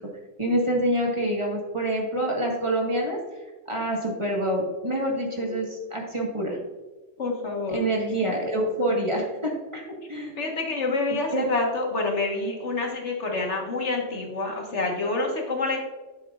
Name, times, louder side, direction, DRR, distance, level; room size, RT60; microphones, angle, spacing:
voice 1, 0.4-3.2 3.7-6.6 7.7-9.8 10.1-10.3 11.1-11.5, right 1 dB, 25° right, -2 dB, 1.7 m, -26 dB
voice 2, 7.2-7.8 10.4-15.8, left 3 dB, 65° left, 1 dB, 1.8 m, -27 dB
11.5 x 8.8 x 2.5 m, 1.2 s
omnidirectional pair, 1.3 m